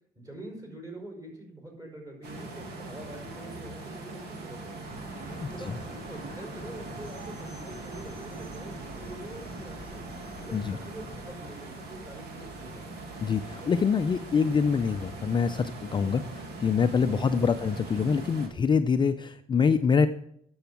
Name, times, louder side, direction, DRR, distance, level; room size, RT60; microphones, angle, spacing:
voice 1, 0.1-4.8 5.1-10.0 10.4-13.0 13.6-13.7 17.0-17.6, right 1 dB, 25° right, 1 dB, 5.1 m, -45 dB
sound 1, 2.2-18.5, right 2 dB, 80° right, 2.2 m, -41 dB
sound 2, 4.8-11.3, right 1 dB, 60° right, 3.3 m, -46 dB
voice 2, 13.2-20.1, left 6 dB, 25° left, 9 dB, 0.4 m, -25 dB
10.5 x 7.1 x 5.9 m, 0.72 s
cardioid pair, 110°, 17 cm